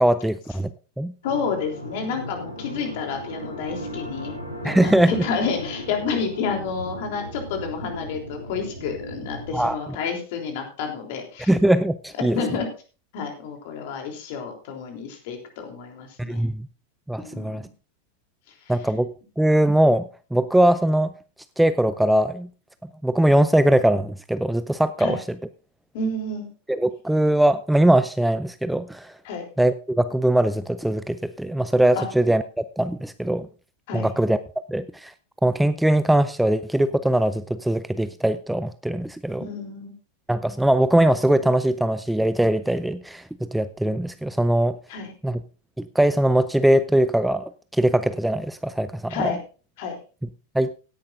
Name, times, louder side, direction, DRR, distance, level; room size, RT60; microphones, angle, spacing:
voice 1, 0.0-0.7 1.0-1.1 4.6-5.2 9.5-9.8 11.5-12.4 16.2-16.7 17.1-17.6 18.7-19.1 19.4-20.0 20.3-21.1 21.6-22.5 23.0-25.2 26.7-29.1 29.6-33.5 33.9-34.4 34.7-35.1 35.4-39.4 40.3-43.2 43.5-44.7 45.2-45.4 45.8-49.2 50.6-50.7, right 1 dB, 5° right, 14 dB, 0.5 m, -21 dB
sound 1, 1.2-9.7, equal, 85° left, 3.0 m, -36 dB
voice 2, 1.2-4.3 4.6-11.5 12.2-12.7 13.1-16.4 17.2-17.7 18.7-18.8 25.0-25.2 25.9-26.5 29.2-29.4 32.0-32.1 33.9-34.1 39.4-39.9 44.9-45.1 49.1-49.4 49.8-50.0, left 5 dB, 50° left, 3 dB, 3.5 m, -30 dB
17.0 x 10.5 x 2.6 m, 0.35 s
figure-of-eight pair, 90°, 0 cm